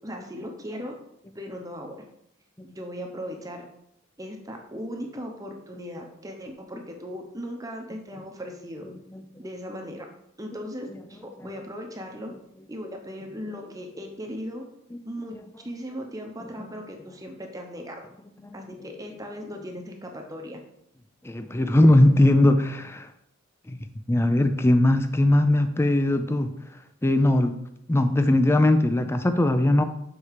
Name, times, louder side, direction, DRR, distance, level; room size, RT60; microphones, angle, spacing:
voice 1, 0.0-0.9 1.3-2.1 2.6-3.6 4.2-8.8 9.4-10.1 10.4-12.3 12.7-14.7 15.0-15.4 15.6-18.0 18.5-20.6, equal, 15° right, 2 dB, 0.8 m, -37 dB
voice 2, 21.2-23.1 23.7-23.8 24.1-26.5 27.0-27.5 27.9-29.8, left 1 dB, 10° left, 9 dB, 0.4 m, -20 dB
6.6 x 4.2 x 4.8 m, 0.77 s
head